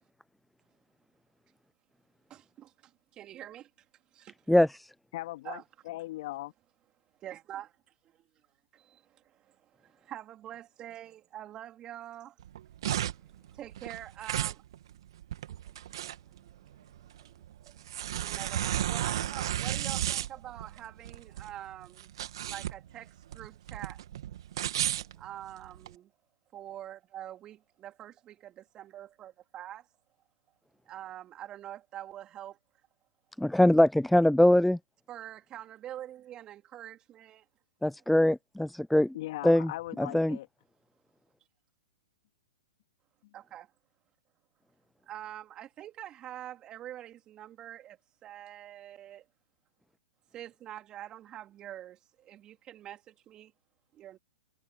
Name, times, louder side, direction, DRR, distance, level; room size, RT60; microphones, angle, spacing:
voice 1, 2.3-3.7 4.1-4.3 5.4-5.6 7.2-7.7 8.7-12.4 13.1-13.2 13.5-14.6 17.6-17.7 18.2-22.1 22.4-24.0 25.1-26.1 26.5-29.9 30.9-32.6 35.1-37.4 43.3-43.7 45.0-49.3 50.3-53.5 53.9-54.2, right 12 dB, 25° right, 3.5 m, -45 dB
voice 2, 5.1-6.5 39.1-40.5, left 17 dB, 50° left, 2.5 m, -39 dB
sound 1, 12.4-25.9, right 12 dB, 60° right, 2.3 m, -34 dB
voice 3, 33.4-34.8 37.8-39.1 39.4-39.7 40.0-40.4, left 1 dB, ahead, 0.3 m, -22 dB
figure-of-eight pair, 115°, 3 cm